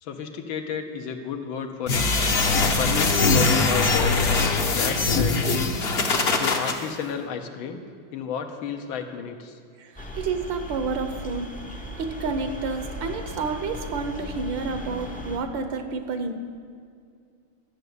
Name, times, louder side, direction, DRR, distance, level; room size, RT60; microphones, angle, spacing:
voice 1, 0.0-2.1 2.5-5.8 6.4-7.8 8.1-9.6 10.0-10.2 15.9-16.0, left 7 dB, 80° left, 6 dB, 1.7 m, -32 dB
sound 1, 1.9-6.7, left 3 dB, 45° left, 0.8 m, -22 dB
voice 2, 9.8-11.5 12.0-16.3, right 4 dB, 70° right, 7 dB, 1.6 m, -30 dB
sound 2, 10.0-15.4, left 1 dB, 10° left, 0.4 m, -37 dB
12.0 x 6.8 x 8.1 m, 2.3 s
omnidirectional pair, 2.2 m